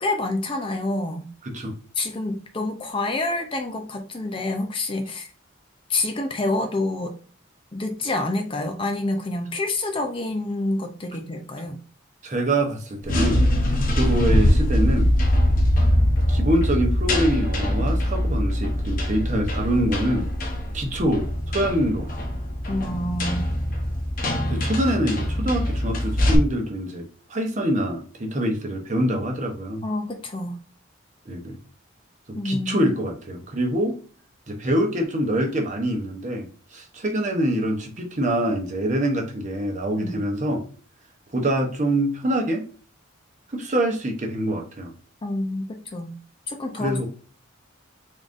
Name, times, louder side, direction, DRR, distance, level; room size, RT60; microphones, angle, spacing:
voice 1, 0.0-1.3 2.0-5.3 5.9-7.2 7.7-11.8 22.7-23.5 29.8-30.6 32.4-32.9 40.0-40.2 45.2-46.1 46.5-47.1, left 2 dB, 25° left, 5 dB, 0.5 m, -27 dB
voice 2, 1.4-1.7 12.2-13.5 13.9-15.2 16.3-20.3 20.7-21.3 21.5-22.1 24.5-29.8 31.3-31.6 32.3-34.0 34.5-36.5 36.7-40.6 41.3-42.7 43.5-44.9 46.7-47.1, right 1 dB, 35° right, 3 dB, 0.8 m, -25 dB
sound 1, 13.0-26.3, left 1 dB, 40° left, 0.8 m, -22 dB
3.8 x 3.6 x 2.5 m, 0.40 s
head